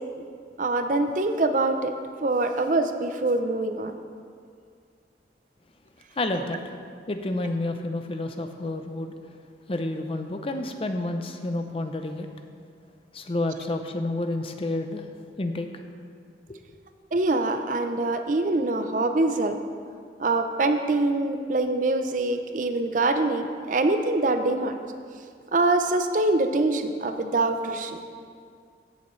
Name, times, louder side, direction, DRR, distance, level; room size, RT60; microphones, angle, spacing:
voice 1, 0.6-1.9 2.2-3.9 17.1-19.6 20.2-24.7 25.5-28.0, right 2 dB, 45° right, 7 dB, 0.5 m, -24 dB
voice 2, 6.2-6.6 7.1-9.1 9.7-12.3 13.1-15.0 15.4-15.7 16.5-16.6, left 2 dB, 30° left, 6 dB, 0.5 m, -29 dB
15.5 x 7.0 x 3.2 m, 2.2 s
head